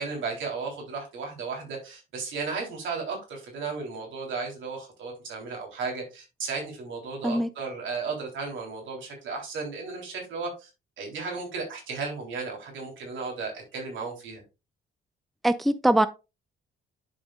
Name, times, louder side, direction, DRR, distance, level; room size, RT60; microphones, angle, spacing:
voice 1, 0.0-10.7 11.0-14.4, right 4 dB, 75° right, 3.5 m, -34 dB
voice 2, 15.4-16.1, right 1 dB, ahead, 0.5 m, -22 dB
11.0 x 5.1 x 2.4 m
cardioid pair, 90°, 20 cm